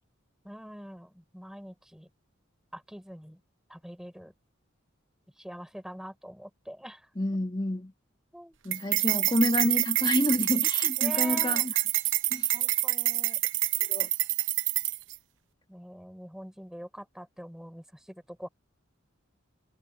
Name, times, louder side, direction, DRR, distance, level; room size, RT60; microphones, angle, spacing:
voice 1, 0.4-2.1 2.7-3.4 3.7-4.3 5.4-7.1 8.3-8.6 11.0-11.7 12.5-13.4 15.7-18.5, equal, 5° right, 6.2 m, -44 dB
voice 2, 7.2-7.9 8.6-11.7 12.3-12.5 13.8-14.1, left 1 dB, 20° left, 1.9 m, -28 dB
sound 1, 8.7-15.2, right 15 dB, 65° right, 0.8 m, -27 dB
head